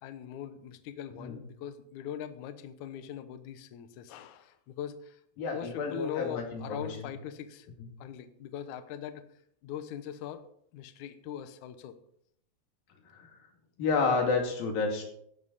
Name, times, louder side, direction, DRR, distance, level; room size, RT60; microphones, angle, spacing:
voice 1, 0.0-5.1 5.5-7.7 8.0-9.2 9.6-10.4 10.7-11.9, left 10 dB, 80° left, 10 dB, 1.7 m, -41 dB
voice 2, 5.4-7.1 7.8-7.9 13.1-13.3 13.8-15.0, left 4 dB, 60° left, 2 dB, 4.0 m, -30 dB
15.0 x 11.0 x 4.2 m, 0.69 s
omnidirectional pair, 4.9 m